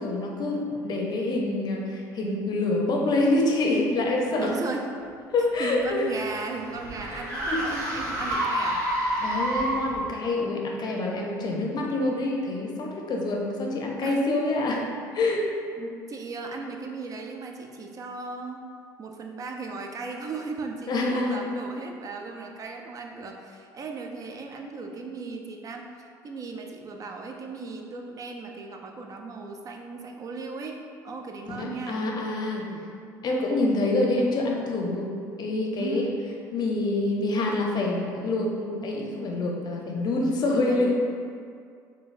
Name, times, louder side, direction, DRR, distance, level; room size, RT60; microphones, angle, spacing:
voice 1, 0.0-4.6 5.3-6.1 7.0-7.6 9.2-14.9 15.1-15.4 20.9-21.6 31.5-32.6 33.2-35.1 35.4-36.1 36.5-41.1, left 2 dB, 45° left, 0 dB, 0.6 m, -26 dB
voice 2, 4.3-4.9 5.6-8.8 14.0-14.2 15.8-18.6 19.0-25.9 26.2-32.1 32.5-32.9 35.8-36.2 40.5-41.0, right 3 dB, 35° right, 2 dB, 0.4 m, -36 dB
sound 1, 5.5-10.1, right 1 dB, 80° right, 1.1 m, -29 dB
3.9 x 2.3 x 2.4 m, 2.3 s
hypercardioid pair, 60°, 10 cm